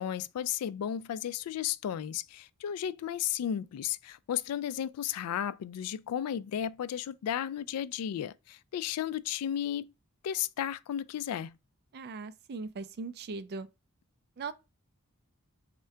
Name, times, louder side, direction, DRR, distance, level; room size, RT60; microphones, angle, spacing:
voice 1, 0.0-9.9 10.2-11.6, left 10 dB, 85° left, 0.3 m, -34 dB
voice 2, 11.9-13.7 14.4-14.5, right 4 dB, 45° right, 0.4 m, -39 dB
3.6 x 2.2 x 4.3 m
head